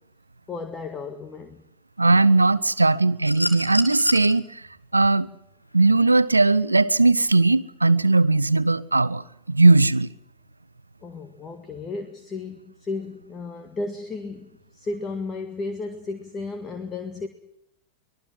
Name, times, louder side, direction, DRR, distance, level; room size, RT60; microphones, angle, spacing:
voice 1, 0.5-1.6 11.0-17.3, left 3 dB, 20° left, 1.9 m, -34 dB
voice 2, 2.0-4.4 4.9-5.3 5.7-10.1, right 3 dB, 80° right, 0.8 m, -18 dB
sound 1, 3.2-4.3 5.8-5.9, left 1 dB, 90° left, 2.7 m, -28 dB
24.5 x 19.0 x 7.8 m
figure-of-eight pair, 90°, 0 cm